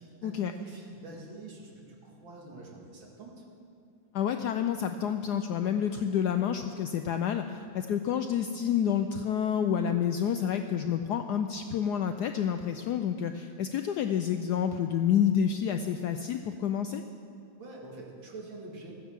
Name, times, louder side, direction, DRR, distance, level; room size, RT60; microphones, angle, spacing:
voice 1, 0.0-3.4 17.6-18.9, right 2 dB, 70° right, -2 dB, 2.9 m, -46 dB
voice 2, 4.1-17.0, left 8 dB, 75° left, 7 dB, 0.9 m, -29 dB
14.5 x 9.6 x 7.3 m, 2.4 s
omnidirectional pair, 2.2 m